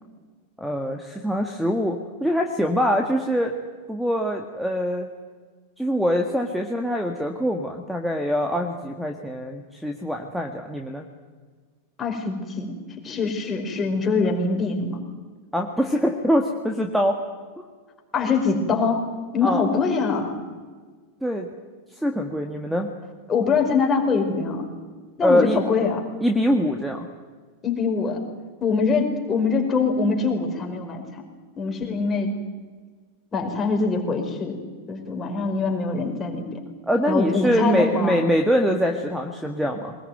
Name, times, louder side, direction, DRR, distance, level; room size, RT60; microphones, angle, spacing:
voice 1, 0.6-3.5 3.9-5.1 5.8-11.1 15.5-17.2 17.6-17.7 19.4-19.6 21.2-21.5 22.0-22.9 25.2-25.6 26.2-27.1 36.9-40.0, equal, ahead, 3 dB, 1.8 m, -23 dB
voice 2, 12.0-12.7 13.0-15.0 18.1-19.1 19.3-20.3 23.3-24.6 25.2-26.0 27.6-28.2 28.6-31.2 31.6-32.3 33.3-34.6 34.9-36.6 37.1-38.2, left 4 dB, 20° left, 2 dB, 5.0 m, -23 dB
22.5 x 20.5 x 9.4 m, 1.5 s
figure-of-eight pair, 90°, 0 cm